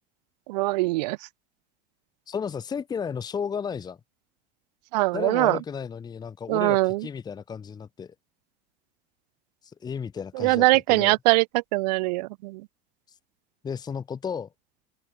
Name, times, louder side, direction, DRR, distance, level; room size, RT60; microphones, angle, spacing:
voice 1, 0.5-1.2 4.9-5.6 6.5-7.1 10.3-12.6, right 22 dB, 85° right, 0.7 m, -22 dB
voice 2, 2.3-4.0 5.1-8.1 9.6-11.2 13.6-14.5, left 6 dB, 20° left, 1.0 m, -33 dB
open air
supercardioid pair, 130°, 21 cm